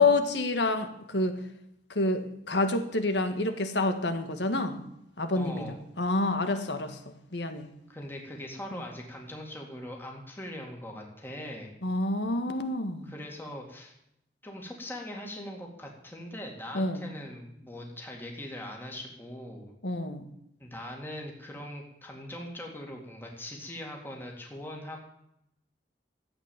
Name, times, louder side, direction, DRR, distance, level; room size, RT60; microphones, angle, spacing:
voice 1, 0.0-1.4 1.9-4.8 5.2-7.7 11.8-13.1 16.7-17.1 19.8-20.2, left 2 dB, 80° left, 8 dB, 1.7 m, -28 dB
voice 2, 5.3-5.8 7.9-11.7 13.0-14.0 14.4-19.7 20.6-25.0, left 1 dB, 10° left, 0 dB, 2.3 m, -41 dB
14.0 x 8.6 x 7.3 m, 0.80 s
head